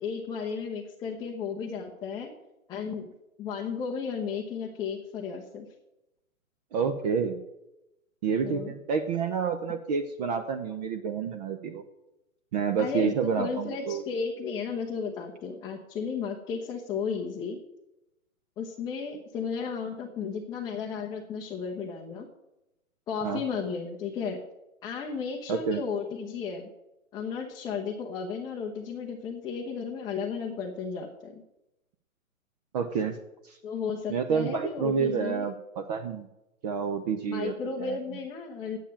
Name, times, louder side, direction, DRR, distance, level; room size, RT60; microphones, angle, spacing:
voice 1, 0.0-2.3 2.7-3.1 3.4-5.7 8.4-8.7 12.8-17.6 18.6-22.3 23.1-24.4 24.8-26.7 27.1-31.4 33.6-35.4 37.3-38.8, left 5 dB, 10° left, -1 dB, 0.7 m, -34 dB
voice 2, 6.7-7.4 8.2-11.8 12.5-14.0 23.2-23.4 25.5-25.8 32.7-33.2 33.4-33.6 34.1-36.3 36.6-38.0, right 6 dB, 30° right, 8 dB, 0.7 m, -29 dB
9.8 x 7.5 x 8.8 m, 0.93 s
hypercardioid pair, 135°, 42 cm